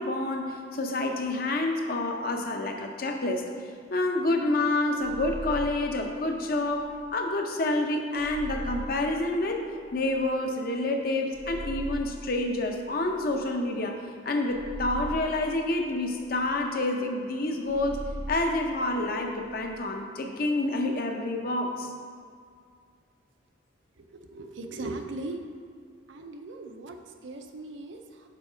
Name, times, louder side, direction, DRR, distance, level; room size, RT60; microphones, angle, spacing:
voice 1, 0.0-3.4 3.9-9.6 9.9-18.0 18.3-21.9, left 2 dB, 50° left, 3 dB, 0.7 m, -28 dB
sound 1, 5.0-7.1 8.2-10.3 11.3-13.7 14.5-16.7 17.7-19.8, right 1 dB, 25° right, 0.3 m, -40 dB
voice 2, 24.0-25.5 26.1-28.3, right 2 dB, 75° right, 5 dB, 0.6 m, -39 dB
7.6 x 4.2 x 5.0 m, 2.1 s
head